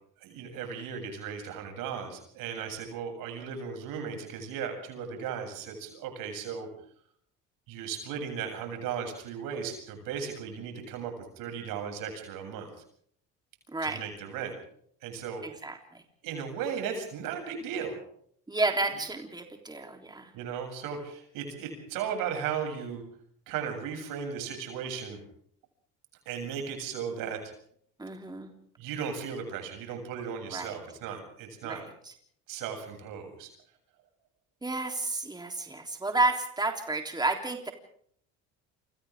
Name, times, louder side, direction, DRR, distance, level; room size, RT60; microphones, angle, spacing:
voice 1, 0.2-6.7 7.7-12.7 13.8-14.5 15.0-15.4 16.2-18.0 20.3-23.0 23.5-25.2 26.3-27.4 28.8-31.8 32.5-33.5, right 7 dB, 80° right, 4 dB, 8.0 m, -36 dB
voice 2, 13.7-14.0 15.4-15.8 18.5-20.3 28.0-28.5 30.5-30.7 31.6-31.8 34.6-37.7, right 2 dB, 10° right, 3 dB, 3.5 m, -31 dB
28.5 x 24.5 x 3.7 m, 0.63 s
supercardioid pair, 90°, 33 cm